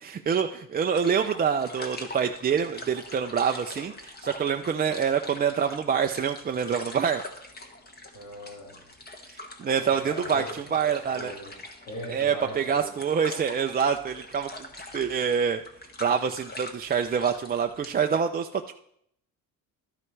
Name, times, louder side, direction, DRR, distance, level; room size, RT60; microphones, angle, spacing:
voice 1, 0.0-7.2 9.6-10.4 10.7-11.3 12.1-14.5 14.9-15.6 16.0-18.7, right 7 dB, 25° right, 4 dB, 0.4 m, -26 dB
sound 1, 0.9-17.9, left 2 dB, 25° left, 1.5 m, -44 dB
voice 2, 8.1-8.7 9.9-11.5 11.8-12.9, equal, 85° left, -7 dB, 4.7 m, -40 dB
12.5 x 9.6 x 3.3 m, 0.70 s
cardioid pair, 120°, 35 cm